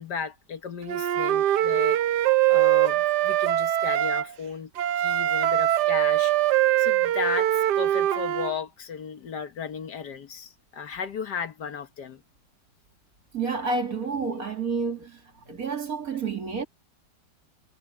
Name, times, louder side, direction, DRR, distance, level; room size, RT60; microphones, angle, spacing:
voice 1, 0.0-2.2 2.5-4.7 5.0-6.3 6.8-12.2, left 6 dB, 65° left, 1.7 m, -35 dB
Wind instrument woodwind instrument, 0.9-4.3 4.8-8.5, right 13 dB, 70° right, 1.2 m, -22 dB
voice 2, 13.3-15.2 15.5-16.6, right 4 dB, 50° right, 2.9 m, -29 dB
omnidirectional pair, 2.0 m